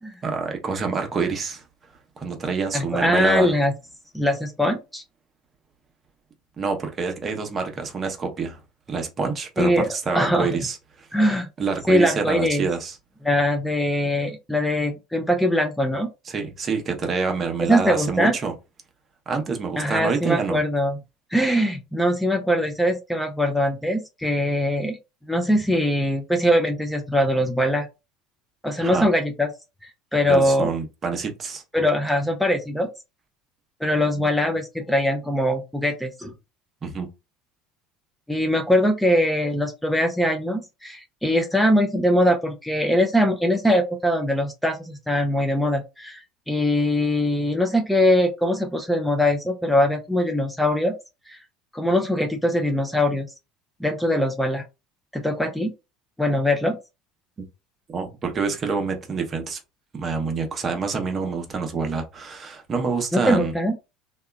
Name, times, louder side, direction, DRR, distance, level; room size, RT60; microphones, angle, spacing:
voice 1, 0.2-1.6 2.2-3.5 6.6-8.6 8.9-11.1 11.6-13.0 16.3-18.5 19.3-20.6 28.8-29.1 30.3-31.6 36.8-37.1 57.9-59.6 59.9-63.5, right 4 dB, 35° right, 0.8 m, -26 dB
voice 2, 2.7-3.7 4.1-5.0 9.6-9.9 10.1-10.5 11.1-11.5 11.9-12.6 13.2-16.1 17.7-18.4 19.8-21.0 21.3-25.0 25.3-27.9 28.6-29.5 29.8-30.7 31.7-32.9 33.8-36.3 38.3-50.9 51.3-51.4 51.7-53.3 53.8-54.6 55.1-55.7 56.2-56.8 63.1-63.8, left 1 dB, 5° left, 0.5 m, -22 dB
2.7 x 2.3 x 2.2 m
hypercardioid pair, 85°, 0 cm